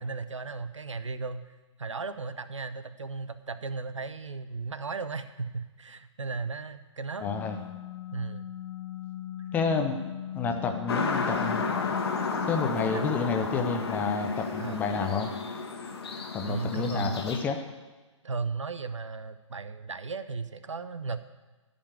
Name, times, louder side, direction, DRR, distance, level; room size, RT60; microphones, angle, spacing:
voice 1, 0.0-7.4 8.1-8.5 12.9-13.1 14.6-14.8 16.5-17.3 18.2-21.2, right 4 dB, 70° right, 12 dB, 0.7 m, -36 dB
sound 1, 7.2-12.7, left 11 dB, 75° left, 1.2 m, -39 dB
voice 2, 7.2-7.6 9.5-10.0 10.3-11.7 12.5-15.3 16.3-17.6, left 5 dB, 10° left, 5 dB, 0.6 m, -29 dB
sound 2, 10.9-17.4, left 4 dB, 50° left, 1.4 m, -32 dB
11.5 x 5.3 x 8.0 m, 1.2 s
figure-of-eight pair, 130°, 16 cm